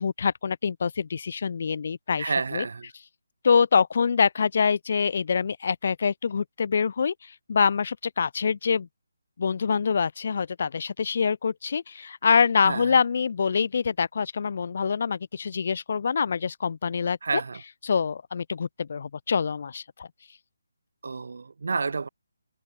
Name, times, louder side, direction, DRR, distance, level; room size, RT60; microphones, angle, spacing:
voice 1, 0.0-2.6 3.4-8.9 9.4-17.2 17.8-20.1, left 6 dB, 50° left, 2.5 m, -25 dB
voice 2, 2.2-2.9 12.6-13.0 17.2-17.6 21.0-22.1, right 4 dB, 65° right, 2.8 m, -30 dB
figure-of-eight pair, 155°, 0 cm